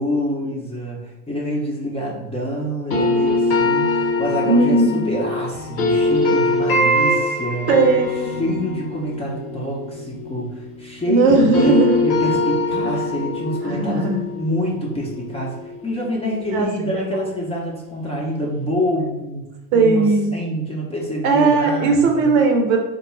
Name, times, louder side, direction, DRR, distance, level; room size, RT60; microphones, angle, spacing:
voice 1, 0.0-7.7 8.4-11.7 12.0-14.0 14.3-15.6 15.8-19.4 19.7-20.0 20.3-22.4, equal, 15° left, -3 dB, 0.6 m, -26 dB
sound 1, 2.9-11.0 11.3-16.2, left 2 dB, 80° left, 1.0 m, -23 dB
voice 2, 4.5-5.2 6.0-6.1 7.1-7.2 7.7-8.4 11.1-12.0 13.6-14.2 16.5-16.7 16.9-17.0 19.7-20.3 21.2-22.8, right 3 dB, 65° right, 3 dB, 0.8 m, -17 dB
3.5 x 2.2 x 3.1 m, 0.97 s
hypercardioid pair, 95°, 45 cm